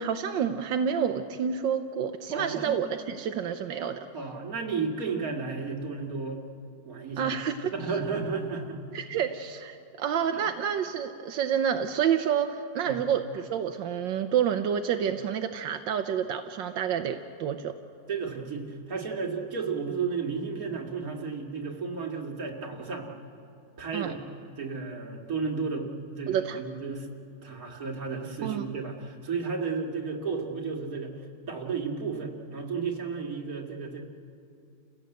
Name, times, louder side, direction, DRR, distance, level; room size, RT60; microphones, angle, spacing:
voice 1, 0.0-4.0 7.2-7.7 8.9-17.7 23.9-24.1 26.3-26.6 28.4-28.7, right 8 dB, 85° right, 6 dB, 1.5 m, -29 dB
voice 2, 2.3-2.7 3.8-6.4 6.8-7.3 7.7-8.8 10.3-10.4 12.8-13.0 18.1-23.1 23.8-24.2 24.6-27.1 27.4-31.1 31.5-34.0, right 5 dB, 50° right, 0 dB, 2.6 m, -33 dB
30.0 x 16.5 x 7.9 m, 2.5 s
omnidirectional pair, 2.0 m